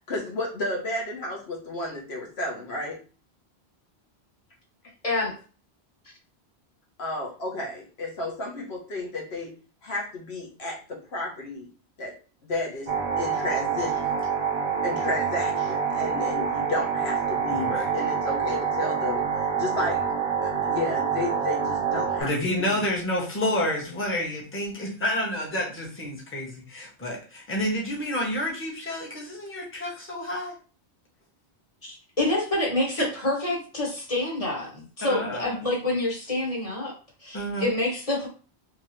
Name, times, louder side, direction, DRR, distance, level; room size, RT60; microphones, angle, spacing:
voice 1, 0.1-3.0 7.0-9.5 9.8-11.7 12.0-12.1 12.4-14.1 14.8-20.0 20.4-22.3 22.6-22.8, left 2 dB, 70° left, -1 dB, 1.3 m, -32 dB
sound 1, 12.9-22.2, right 6 dB, 40° right, 0.7 m, -26 dB
voice 2, 17.5-17.9 22.2-30.5 35.0-35.6 37.3-37.7, left 1 dB, 10° left, -3 dB, 1.0 m, -29 dB
voice 3, 31.8-36.9 37.2-38.3, left 1 dB, 35° left, -3 dB, 1.5 m, -27 dB
3.6 x 3.0 x 3.2 m, 0.37 s
omnidirectional pair, 1.1 m